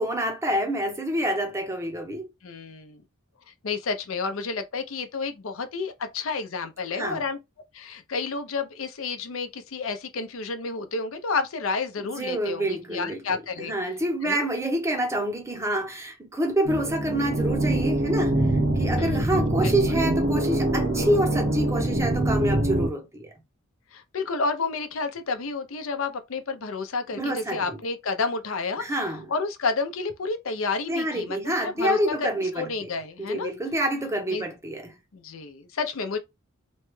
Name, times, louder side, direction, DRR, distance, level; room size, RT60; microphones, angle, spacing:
voice 1, 0.0-2.3 6.9-7.2 12.0-18.4 18.8-23.3 27.1-27.8 28.8-29.3 30.9-32.9 33.2-34.9, right 1 dB, 15° right, 0.6 m, -27 dB
voice 2, 2.4-3.0 3.6-7.4 7.7-13.7 14.2-14.5 19.0-19.3 19.6-19.7 23.9-28.8 29.3-32.3 32.6-33.5 34.3-34.5 35.1-36.2, left 4 dB, 70° left, 0.6 m, -30 dB
sound 1, 16.6-22.9, right 1 dB, 60° right, 0.8 m, -24 dB
3.0 x 2.2 x 3.0 m
head